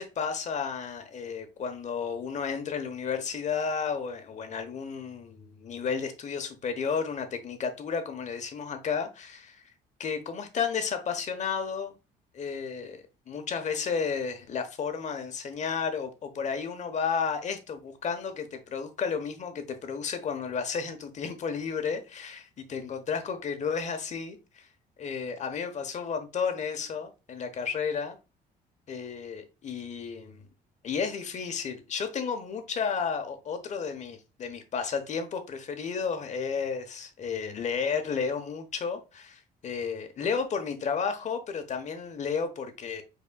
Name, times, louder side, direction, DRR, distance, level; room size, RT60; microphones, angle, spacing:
voice 1, 0.0-9.6 10.0-11.9 12.3-24.7 25.0-28.2 28.9-30.5 30.8-43.0, left 6 dB, 45° left, 1.0 m, -32 dB
5.5 x 4.1 x 2.3 m
cardioid pair, 110°, 17 cm